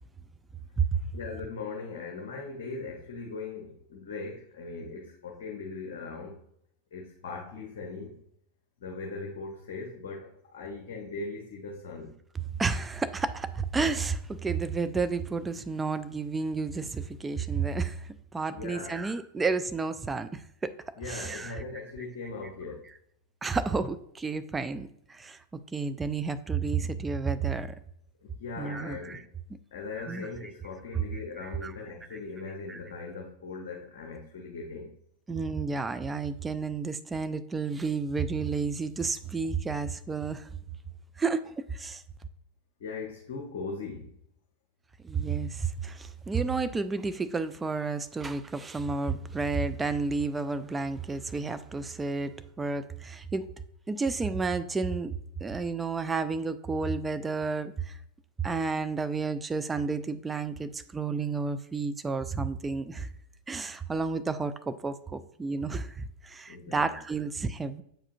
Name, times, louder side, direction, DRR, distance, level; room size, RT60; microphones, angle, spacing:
voice 1, 1.1-6.4 6.9-8.2 8.8-12.2 18.5-19.0 21.0-22.9 28.2-29.2 29.7-34.9 42.8-44.1 66.5-67.0, left 4 dB, 55° left, 0 dB, 0.8 m, -39 dB
voice 2, 12.6-18.0 18.3-20.7 21.1-21.6 23.4-25.4 25.7-27.7 28.6-29.2 30.0-30.3 31.4-31.7 32.1-32.2 32.7-32.8 35.3-40.5 41.2-41.4 41.7-42.0 45.0-52.3 52.6-53.5 53.9-55.1 55.4-57.9 58.4-63.1 63.5-67.8, right 4 dB, 15° right, 12 dB, 0.3 m, -31 dB
7.5 x 4.8 x 2.6 m, 0.72 s
figure-of-eight pair, 90°, 0 cm